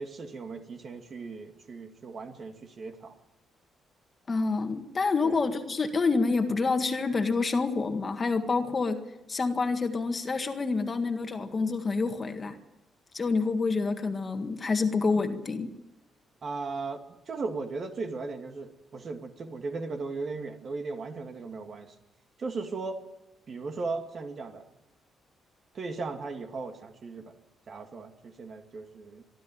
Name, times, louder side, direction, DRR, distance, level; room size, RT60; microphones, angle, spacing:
voice 1, 0.0-3.2 5.2-5.4 16.4-22.0 22.4-23.0 23.5-24.7 25.7-27.3 27.7-29.2, right 3 dB, 45° right, 6 dB, 2.2 m, -37 dB
voice 2, 4.3-12.6 13.1-15.7, left 4 dB, 30° left, 6 dB, 1.8 m, -28 dB
24.0 x 13.0 x 9.2 m, 0.97 s
cardioid pair, 130°, 0 cm